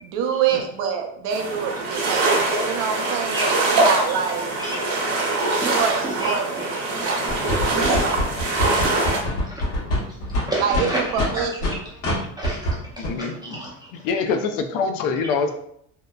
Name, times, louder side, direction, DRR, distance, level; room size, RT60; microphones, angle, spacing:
voice 1, 0.0-4.5 5.7-6.7 10.6-11.8, right 7 dB, 80° right, 4 dB, 0.6 m, -26 dB
sound 1, 1.3-9.2, right 2 dB, 60° right, 0.9 m, -23 dB
voice 2, 4.6-4.9 5.6-6.6 7.4-8.1 8.8-8.9 9.4-9.6 10.5-11.0 11.3-11.4 12.4-12.6 13.0-14.0, right 1 dB, 15° right, -6 dB, 0.4 m, -31 dB
sound 2, 7.3-11.7 12.0-12.2 12.4-12.7 13.0-13.1, left 1 dB, 60° left, 1.1 m, -24 dB
voice 3, 13.0-13.6 14.0-15.5, left 5 dB, 75° left, 6 dB, 0.5 m, -24 dB
2.8 x 2.0 x 2.3 m, 0.72 s
cardioid pair, 125°, 33 cm